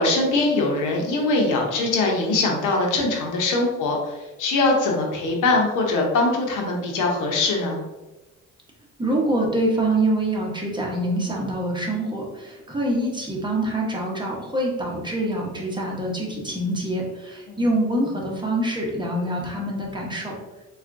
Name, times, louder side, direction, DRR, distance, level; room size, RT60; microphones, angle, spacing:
voice 1, 0.0-7.8 17.5-17.6, left 2 dB, 85° left, 0 dB, 0.8 m, -22 dB
voice 2, 9.0-20.4, right 1 dB, 15° right, -2 dB, 0.9 m, -25 dB
4.3 x 2.4 x 2.5 m, 1.1 s
cardioid pair, 90°, 30 cm